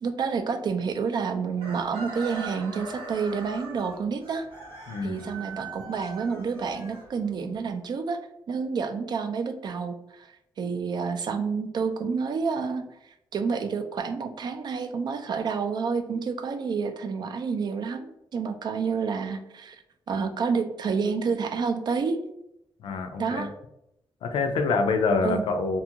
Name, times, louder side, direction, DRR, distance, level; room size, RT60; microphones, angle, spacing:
voice 1, 0.0-4.5 5.0-8.2 8.5-12.9 13.3-19.8 20.1-22.2 23.2-23.5 25.2-25.4, right 5 dB, 55° right, 7 dB, 0.4 m, -29 dB
Chicken rooster, 1.6-7.5, right 3 dB, 90° right, 1.0 m, -41 dB
voice 2, 4.9-5.3 22.8-23.5 24.2-25.8, left 4 dB, 90° left, 5 dB, 0.4 m, -26 dB
2.5 x 2.4 x 2.8 m, 0.80 s
cardioid pair, 100°, 9 cm